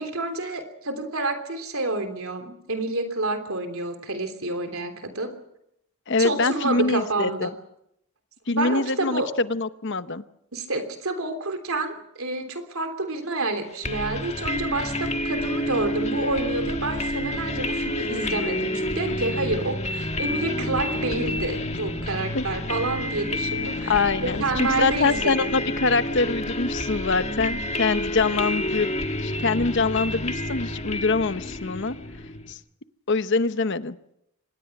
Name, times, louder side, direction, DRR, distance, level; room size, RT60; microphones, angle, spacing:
voice 1, 0.0-5.3 6.2-7.5 8.5-9.3 10.5-25.6, right 2 dB, 70° right, 8 dB, 3.2 m, -29 dB
voice 2, 6.1-7.5 8.5-10.2 22.3-22.4 23.9-28.9 29.2-32.0 32.5-32.6 33.1-34.0, left 3 dB, 55° left, 13 dB, 0.9 m, -24 dB
sound 1, 13.8-32.5, left 1 dB, 30° left, 1.5 m, -29 dB
25.5 x 20.0 x 6.0 m, 0.77 s
head